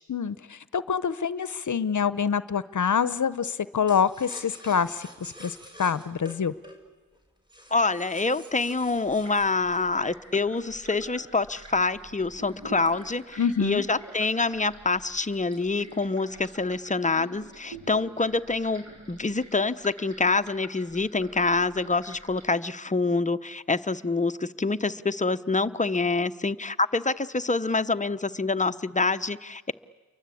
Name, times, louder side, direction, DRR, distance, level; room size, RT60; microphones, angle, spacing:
voice 1, 0.1-6.5 13.4-13.8, left 7 dB, 55° left, 15 dB, 0.9 m, -26 dB
sound 1, 3.9-10.8 11.3-13.8 14.2-14.3 14.6-14.9 15.3-16.0 16.4-16.9, equal, 10° right, 5.2 m, -49 dB
voice 2, 7.7-29.7, left 3 dB, 20° left, 12 dB, 0.9 m, -26 dB
sound 2, 8.8-22.4, right 2 dB, 50° right, 7.2 m, -48 dB
29.5 x 23.5 x 8.5 m, 1.3 s
wide cardioid pair, 85°, 35 cm